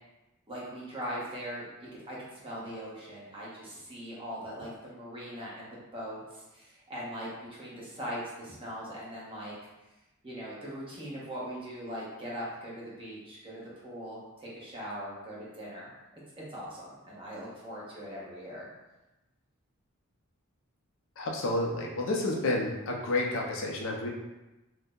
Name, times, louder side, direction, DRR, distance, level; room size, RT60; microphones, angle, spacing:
voice 1, 0.5-9.5 10.2-15.9 16.4-18.7, equal, 25° right, -6 dB, 0.8 m, -40 dB
voice 2, 21.2-24.1, left 2 dB, 60° left, -1 dB, 0.5 m, -30 dB
2.6 x 2.1 x 3.5 m, 1.0 s
head